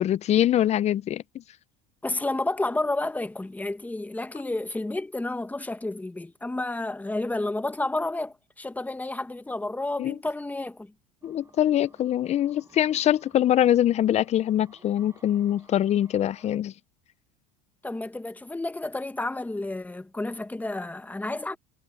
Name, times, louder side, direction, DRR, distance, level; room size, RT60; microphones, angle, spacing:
voice 1, 0.0-1.4 10.0-10.2 11.2-16.7, left 11 dB, 35° left, 0.5 m, -23 dB
voice 2, 2.0-10.9 17.8-21.6, left 2 dB, 10° left, 1.3 m, -31 dB
sound 1, 11.2-16.6, right 3 dB, 15° right, 6.6 m, -57 dB
supercardioid pair, 120°, 21 cm